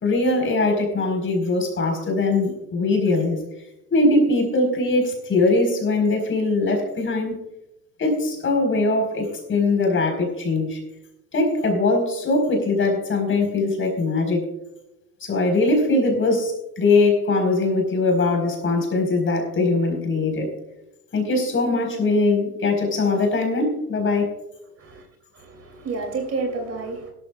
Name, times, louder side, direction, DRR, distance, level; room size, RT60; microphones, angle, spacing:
voice 1, 0.0-3.4 3.9-7.3 8.0-10.8 11.3-14.5 15.2-20.5 21.1-24.3, left 2 dB, 25° left, 4 dB, 4.5 m, -21 dB
voice 2, 25.3-27.1, right 3 dB, 30° right, 3 dB, 2.9 m, -30 dB
17.0 x 13.0 x 2.4 m, 0.92 s
hypercardioid pair, 95°, 45 cm